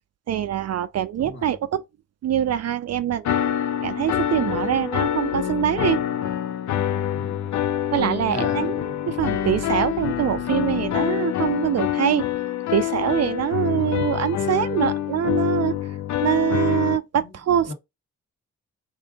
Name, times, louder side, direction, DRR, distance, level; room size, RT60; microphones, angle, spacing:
voice 1, 0.3-1.8 2.2-3.3 3.8-6.0 7.9-12.2 12.7-15.8 16.2-17.7, right 10 dB, 50° right, 0.4 m, -24 dB
voice 2, 1.2-1.5 4.4-4.7 7.1-7.5 8.3-8.9 13.6-14.0 17.1-17.3 17.7-17.8, left 2 dB, 35° left, 1.2 m, -37 dB
sound 1, 3.2-17.0, left 11 dB, 60° left, 0.5 m, -26 dB
3.7 x 2.6 x 3.5 m
supercardioid pair, 55°, 33 cm